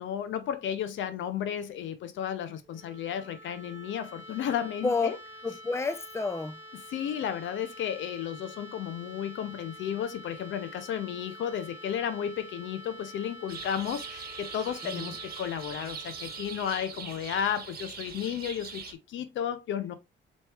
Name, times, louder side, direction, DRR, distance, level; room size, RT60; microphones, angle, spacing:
voice 1, 0.0-5.2 6.9-19.9, left 9 dB, 75° left, 0.7 m, -33 dB
sound 1, 2.6-18.4, equal, 15° right, 1.3 m, -48 dB
voice 2, 5.4-6.6 14.8-15.1, left 3 dB, 15° left, 0.6 m, -30 dB
sound 2, 13.5-18.9, right 6 dB, 50° right, 1.1 m, -42 dB
4.1 x 3.1 x 3.4 m
cardioid pair, 90°, 20 cm